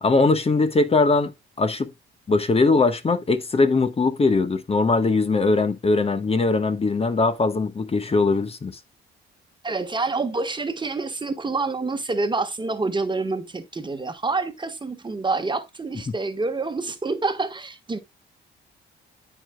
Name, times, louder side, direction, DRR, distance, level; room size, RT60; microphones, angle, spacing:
voice 1, 0.0-1.3 1.6-1.9 2.3-8.8, left 3 dB, 30° left, 1.2 m, -20 dB
voice 2, 9.6-18.0, right 3 dB, 25° right, 1.3 m, -27 dB
13.5 x 5.0 x 2.2 m
cardioid pair, 90°, 20 cm